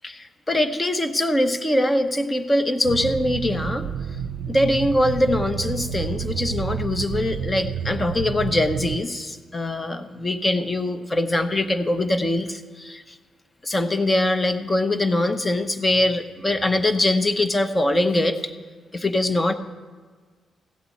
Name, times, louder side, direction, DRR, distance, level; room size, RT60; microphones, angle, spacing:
voice 1, 0.0-3.9 4.5-13.2 13.6-18.4 18.9-19.5, left 1 dB, 25° left, 9 dB, 0.9 m, -23 dB
sound 1, 2.8-9.0, right 7 dB, 85° right, 0.4 m, -29 dB
15.5 x 8.3 x 4.2 m, 1.5 s
cardioid pair, 80°, 0 cm